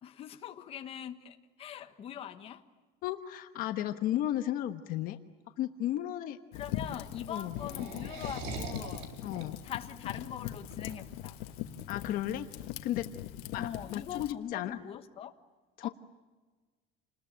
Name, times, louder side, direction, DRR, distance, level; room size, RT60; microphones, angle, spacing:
voice 1, 0.0-2.6 6.5-9.1 9.6-11.4 13.6-15.3 15.8-15.9, left 9 dB, 30° left, 1.3 m, -42 dB
voice 2, 3.0-5.2 5.6-6.4 7.3-7.6 9.2-9.6 11.9-12.5 12.8-13.1 13.5-14.8 15.8-15.9, left 12 dB, 50° left, 1.2 m, -34 dB
Fire, 6.5-14.3, left 12 dB, 85° left, 1.5 m, -41 dB
sound 1, 6.6-11.8, right 3 dB, 65° right, 3.9 m, -44 dB
28.5 x 21.0 x 8.8 m
cardioid pair, 180°, 19 cm